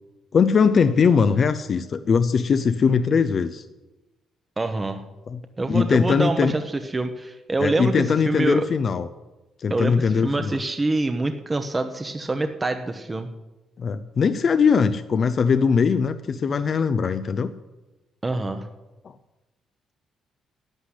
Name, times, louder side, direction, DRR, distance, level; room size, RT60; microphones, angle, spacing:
voice 1, 0.3-3.6 5.3-5.4 5.7-6.5 7.6-9.1 9.6-10.6 13.8-17.5, left 6 dB, 50° left, 11 dB, 0.6 m, -20 dB
voice 2, 4.6-5.0 5.6-8.7 9.7-13.3 18.2-18.7, right 2 dB, 20° right, 7 dB, 1.0 m, -26 dB
12.0 x 8.1 x 9.9 m, 1.1 s
cardioid pair, 90°, 0 cm